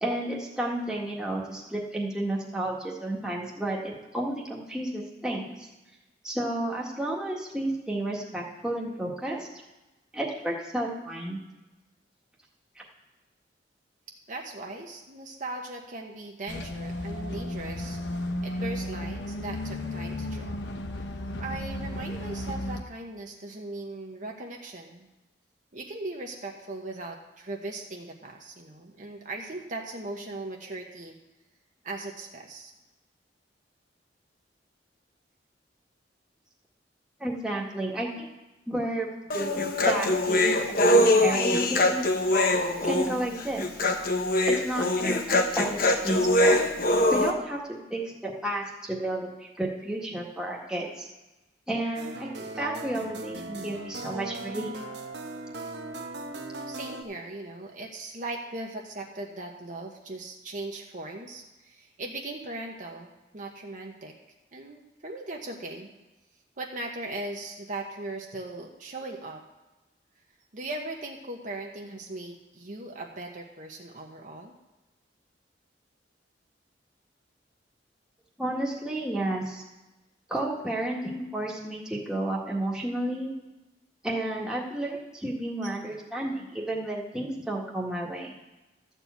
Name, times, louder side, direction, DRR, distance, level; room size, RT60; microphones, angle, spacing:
voice 1, 0.0-5.7 6.2-9.5 10.1-11.4 37.2-38.3 38.7-39.1 39.3-42.0 42.8-43.6 44.5-46.6 47.1-51.1 51.7-54.7 78.4-79.6 80.3-83.3 84.0-88.3, right 1 dB, 5° right, -3 dB, 1.7 m, -32 dB
voice 2, 14.3-18.0 18.4-20.6 20.9-25.1 25.7-31.2 31.8-32.7 56.7-63.1 63.3-64.1 64.5-65.9 66.6-69.4 70.5-74.5 80.3-80.4 85.6-85.7, right 2 dB, 45° right, 1 dB, 1.1 m, -39 dB
sound 1, 16.5-22.8, left 1 dB, 75° left, 0.9 m, -34 dB
Human voice, 39.3-47.3, left 1 dB, 55° left, 1.0 m, -23 dB
sound 2, 51.9-57.0, right 2 dB, 70° right, 1.0 m, -38 dB
13.0 x 4.6 x 8.2 m, 1.1 s
head